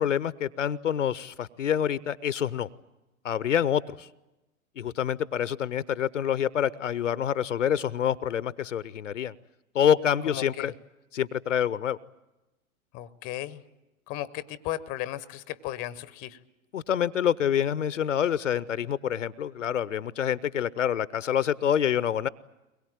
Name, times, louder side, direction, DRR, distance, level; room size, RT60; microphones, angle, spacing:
voice 1, 0.0-2.7 3.2-4.1 4.8-9.3 9.7-10.7 11.1-12.0 16.7-22.3, left 9 dB, 60° left, 19 dB, 0.7 m, -27 dB
voice 2, 10.3-10.7 12.9-13.6 14.1-16.4, left 14 dB, 20° left, 17 dB, 0.8 m, -35 dB
23.0 x 21.5 x 8.9 m, 1.0 s
figure-of-eight pair, 110°, 43 cm